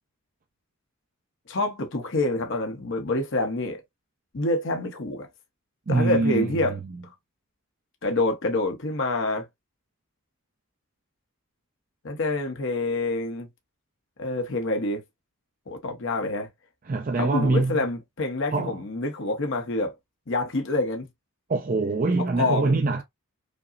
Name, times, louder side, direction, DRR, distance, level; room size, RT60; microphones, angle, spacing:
voice 1, 1.5-3.8 4.3-5.3 5.9-6.8 8.0-9.4 12.0-13.5 14.2-15.0 15.7-16.5 17.2-19.9 20.3-21.1 22.2-22.8, left 2 dB, 60° left, 0.8 m, -27 dB
voice 2, 5.9-7.0 16.9-17.8 18.5-18.8 21.5-23.0, right 3 dB, 40° right, 0.4 m, -24 dB
5.1 x 2.0 x 2.4 m
head